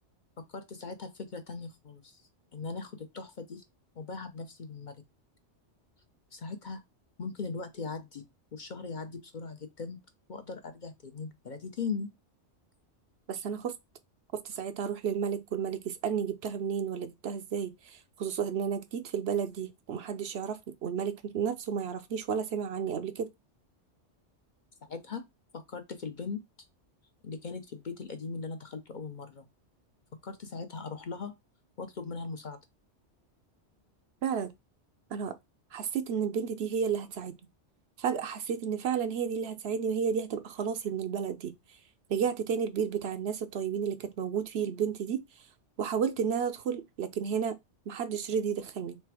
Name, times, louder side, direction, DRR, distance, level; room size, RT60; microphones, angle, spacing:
voice 1, 0.5-2.2 2.5-3.6 4.0-5.0 6.3-6.8 7.2-8.2 8.5-10.0 10.3-12.1 24.8-25.2 25.5-26.4 27.2-29.5 30.2-31.3 31.8-32.6, left 4 dB, 50° left, 0.7 m, -39 dB
voice 2, 13.3-13.7 14.3-23.3 34.2-34.5 35.1-35.4 35.7-37.3 38.0-41.5 42.1-45.2 45.8-47.6 47.9-49.0, right 7 dB, 65° right, 0.8 m, -32 dB
3.4 x 3.3 x 4.6 m
omnidirectional pair, 1.2 m